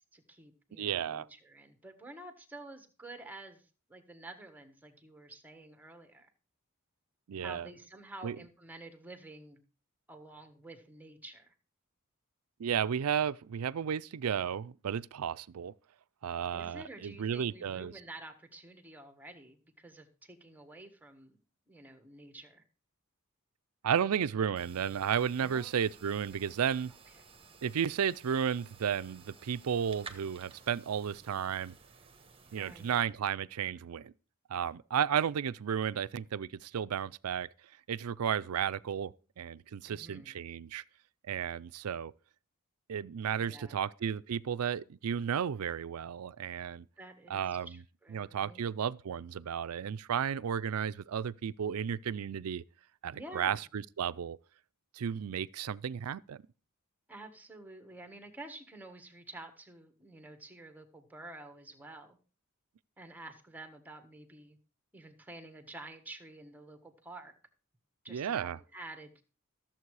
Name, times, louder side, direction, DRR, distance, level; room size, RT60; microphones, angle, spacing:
voice 1, 0.1-6.3 7.4-9.6 10.1-11.5 16.5-21.4 21.7-22.6 25.4-25.7 32.5-33.0 39.9-40.3 43.4-43.8 47.0-48.6 53.1-53.6 57.1-62.2 63.0-64.6 64.9-67.3 68.0-69.1, right 2 dB, 10° right, 1.4 m, -50 dB
voice 2, 0.8-1.3 7.3-7.7 8.2-8.4 12.6-15.7 16.2-17.9 23.8-26.9 27.6-31.7 32.5-34.1 34.5-37.5 37.9-40.8 41.3-42.1 42.9-46.9 47.3-47.7 48.1-52.6 53.0-54.4 54.9-56.4 68.1-68.6, right 8 dB, 80° right, 0.4 m, -33 dB
sound 1, 24.6-33.0, right 5 dB, 25° right, 1.2 m, -55 dB
14.0 x 7.5 x 4.8 m
head